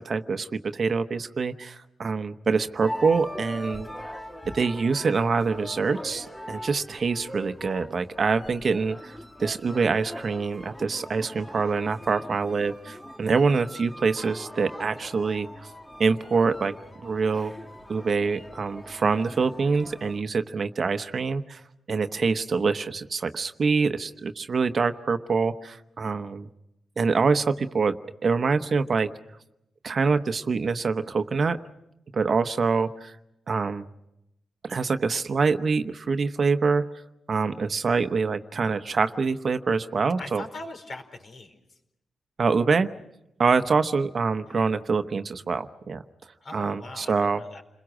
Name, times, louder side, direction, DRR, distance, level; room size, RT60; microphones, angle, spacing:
voice 1, 0.0-3.9 4.5-15.5 16.0-17.5 17.9-21.6 21.9-26.5 27.0-28.0 28.2-29.1 29.8-31.6 32.1-33.2 33.5-33.8 34.6-36.8 37.3-40.4 42.4-42.9 43.4-46.0 46.5-47.4, right 4 dB, 50° right, 9 dB, 1.0 m, -25 dB
sound 1, 2.8-20.2, left 1 dB, 10° left, 1.5 m, -41 dB
voice 2, 40.2-41.5 46.4-47.1 47.4-47.6, left 2 dB, 55° left, 5 dB, 4.5 m, -40 dB
30.0 x 22.0 x 6.2 m, 0.86 s
cardioid pair, 95°, 0 cm